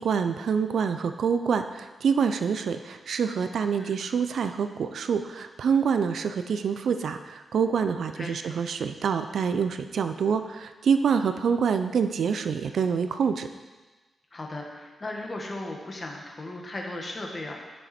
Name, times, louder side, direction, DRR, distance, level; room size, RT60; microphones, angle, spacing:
voice 1, 0.0-13.5, right 6 dB, 80° right, 9 dB, 0.5 m, -26 dB
voice 2, 14.3-17.6, left 2 dB, 35° left, 0 dB, 1.7 m, -36 dB
11.0 x 6.4 x 4.4 m, 1.3 s
cardioid pair, 80°, 0 cm